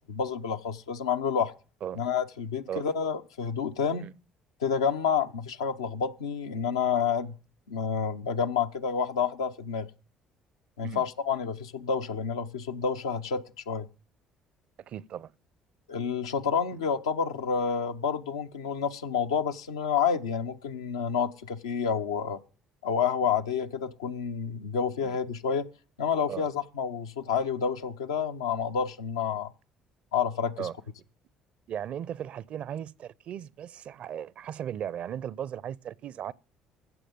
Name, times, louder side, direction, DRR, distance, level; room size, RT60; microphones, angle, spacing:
voice 1, 0.1-1.5 1.9-4.1 4.6-7.4 7.7-9.9 10.8-13.9 15.9-22.4 22.8-25.7 26.0-29.5 30.1-30.7, left 6 dB, 85° left, 0.8 m, -29 dB
voice 2, 14.9-15.3 25.0-25.1 26.3-26.5 30.6-30.7 31.7-36.3, right 9 dB, 55° right, 0.6 m, -37 dB
15.5 x 7.2 x 5.3 m
hypercardioid pair, 55°, 2 cm